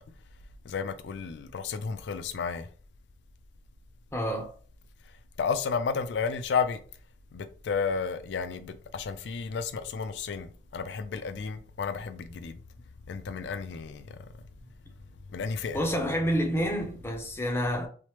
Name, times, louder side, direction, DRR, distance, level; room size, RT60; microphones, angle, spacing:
voice 1, 0.6-2.7 5.4-6.8 7.3-12.6 13.1-14.2 15.3-15.8, left 5 dB, 80° left, 0.4 m, -32 dB
voice 2, 4.1-4.5 15.7-17.9, equal, 15° left, 0.5 m, -28 dB
3.2 x 2.0 x 2.9 m
head